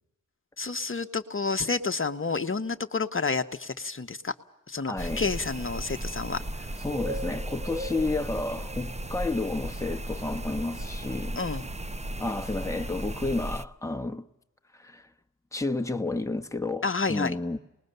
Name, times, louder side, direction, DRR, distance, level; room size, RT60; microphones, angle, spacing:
voice 1, 0.6-4.3 4.7-6.7 11.4-11.7 16.8-17.4, left 4 dB, 40° left, 1.1 m, -30 dB
voice 2, 4.9-5.2 6.8-11.4 12.2-14.3 14.7-15.1 15.5-17.6, left 2 dB, 10° left, 1.3 m, -31 dB
sound 1, 5.0-13.6, right 1 dB, 20° right, 0.9 m, -35 dB
27.5 x 20.5 x 6.8 m
cardioid pair, 60°, 32 cm